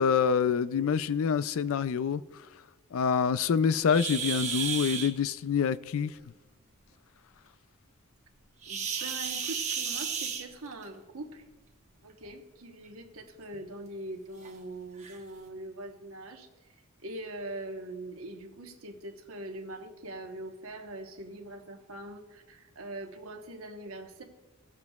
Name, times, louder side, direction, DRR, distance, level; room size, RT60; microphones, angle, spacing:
voice 1, 0.0-2.2 2.9-6.1, left 6 dB, 65° left, 0.4 m, -26 dB
sound 1, 3.9-5.1 8.6-10.9 12.1-12.3 12.9-13.0 13.5-13.6 14.4-14.5 15.0-15.2, right 6 dB, 35° right, 1.0 m, -33 dB
voice 2, 8.7-11.4 12.0-16.5 17.0-24.2, right 1 dB, 70° right, 1.2 m, -42 dB
18.0 x 7.2 x 2.4 m
head